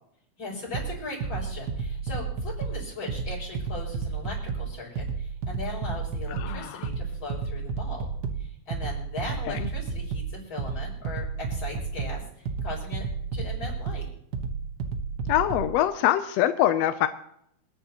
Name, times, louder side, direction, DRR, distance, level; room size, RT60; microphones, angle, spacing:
voice 1, 0.4-8.1 8.4-13.1 13.3-14.1, left 2 dB, 40° left, -4 dB, 7.0 m, -39 dB
sound 1, 0.7-15.7, right 5 dB, 80° right, 0.9 m, -32 dB
voice 2, 6.3-6.9 9.5-9.7 15.3-17.1, left 12 dB, 80° left, 10 dB, 1.5 m, -24 dB
27.5 x 10.5 x 2.9 m, 0.74 s
omnidirectional pair, 3.5 m